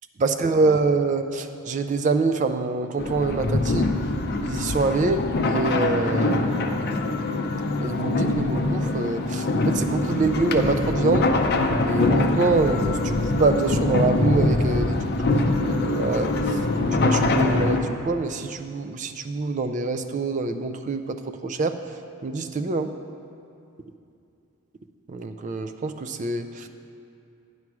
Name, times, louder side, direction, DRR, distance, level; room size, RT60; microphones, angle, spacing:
voice 1, 0.2-3.9 4.4-7.3 7.8-11.3 11.8-16.3 16.9-21.8 22.2-22.9 25.1-26.7, right 3 dB, 35° right, 8 dB, 0.3 m, -25 dB
sound 1, 3.0-17.8, left 2 dB, 45° left, 0.5 m, -23 dB
9.5 x 4.7 x 6.0 m, 2.5 s
head